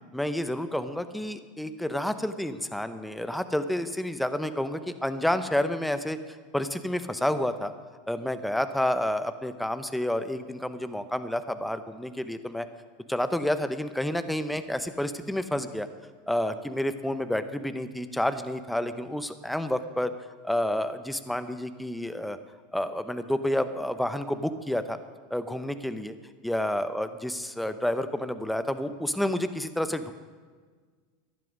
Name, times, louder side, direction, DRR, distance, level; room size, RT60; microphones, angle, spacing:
voice 1, 0.1-6.2 6.5-7.7 8.1-12.7 13.1-15.9 16.3-20.1 20.4-22.4 22.7-25.0 25.3-26.1 26.4-30.1, left 1 dB, 5° left, 10 dB, 0.9 m, -29 dB
15.5 x 11.0 x 5.1 m, 1.5 s
hypercardioid pair, 85°, 0 cm